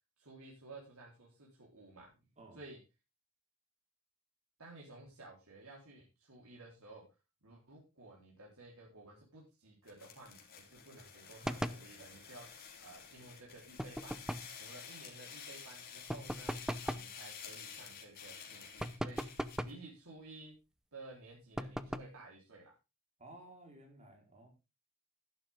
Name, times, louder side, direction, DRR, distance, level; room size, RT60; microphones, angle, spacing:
voice 1, 0.2-2.1 2.6-2.8 4.6-7.0 7.4-12.5 12.8-14.2 14.6-16.5 16.8-19.2 19.7-20.6 20.9-22.7, right 2 dB, 80° right, -3 dB, 4.0 m, -54 dB
sound 1, 9.9-19.7, left 7 dB, 45° left, 3.5 m, -51 dB
sound 2, 11.4-11.9 13.8-14.6 16.1-17.1 18.8-19.8 21.6-22.2, equal, 5° right, 0.6 m, -39 dB
voice 2, 23.2-24.5, right 1 dB, 30° right, 2 dB, 4.4 m, -55 dB
12.5 x 11.5 x 3.7 m, 0.27 s
head